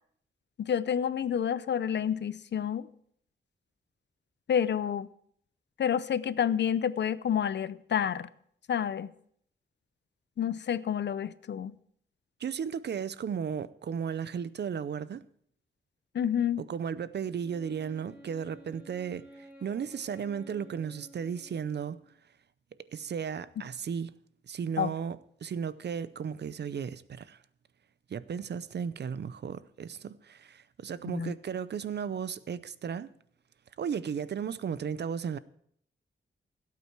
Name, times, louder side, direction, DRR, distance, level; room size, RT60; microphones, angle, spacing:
voice 1, 0.6-2.9 4.5-5.1 5.8-8.3 8.7-9.1 10.4-11.7 16.1-16.6 24.8-24.9 31.1-31.3, left 8 dB, 60° left, 0.5 m, -29 dB
voice 2, 12.4-15.2 16.6-22.0 22.9-24.1 24.4-27.4 28.1-33.1 33.8-35.4, right 7 dB, 55° right, 0.5 m, -35 dB
Wind instrument woodwind instrument, 17.4-22.2, right 1 dB, 5° right, 6.4 m, -53 dB
17.0 x 8.5 x 4.6 m
wide cardioid pair, 140°, 20 cm